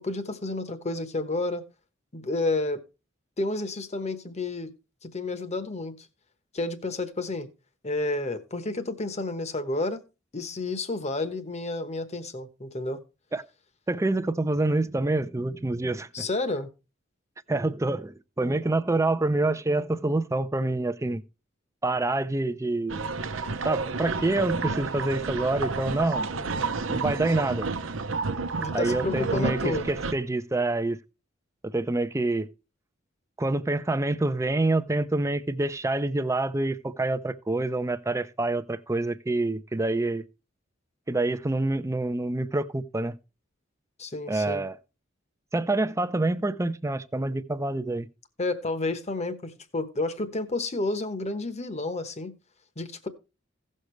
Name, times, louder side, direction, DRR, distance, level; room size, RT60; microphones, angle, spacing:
voice 1, 0.0-1.6 2.1-2.8 3.4-4.7 5.0-6.1 6.5-7.5 7.8-10.0 10.3-13.0 16.1-16.7 26.3-26.6 28.6-29.9 44.0-44.6 48.4-52.3 52.8-53.1, left 2 dB, 35° left, 1.1 m, -30 dB
voice 2, 13.9-16.3 17.5-21.2 21.8-23.1 23.6-26.3 26.9-27.7 28.7-31.0 31.6-32.5 33.4-40.2 41.1-43.2 44.3-44.8 45.5-48.1, right 2 dB, 15° right, 0.5 m, -27 dB
sound 1, 22.9-30.1, right 4 dB, 85° right, 0.8 m, -30 dB
16.5 x 6.5 x 3.2 m
head